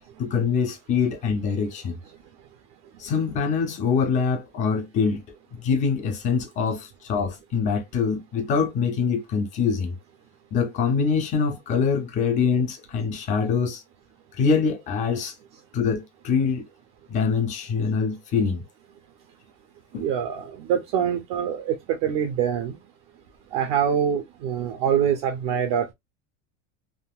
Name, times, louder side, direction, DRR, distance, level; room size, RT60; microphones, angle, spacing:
voice 1, 0.2-2.0 3.0-5.2 5.6-9.9 10.5-13.8 14.3-15.3 15.7-16.6 17.1-18.6 19.9-20.1, left 5 dB, 20° left, 0.4 m, -24 dB
voice 2, 19.9-22.8 23.5-25.9, right 8 dB, 40° right, 0.5 m, -25 dB
3.5 x 2.4 x 2.2 m
supercardioid pair, 165°, 41 cm